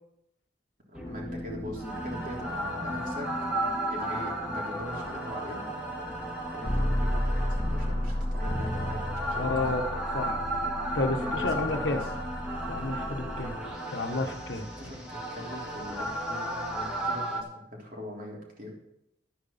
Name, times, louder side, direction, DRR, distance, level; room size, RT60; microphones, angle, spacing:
sound 1, 0.9-17.4, equal, 5° right, 1.9 m, -32 dB
voice 1, 0.9-3.3 3.9-5.7 6.5-9.0 9.3-9.7 11.2-12.1 14.8-18.7, left 1 dB, 45° right, -2 dB, 3.6 m, -42 dB
voice 2, 9.3-9.8 10.1-10.4 10.9-12.0 12.7-13.6 13.9-14.7, left 2 dB, 75° left, 6 dB, 1.4 m, -30 dB
11.5 x 9.3 x 5.8 m, 0.79 s
head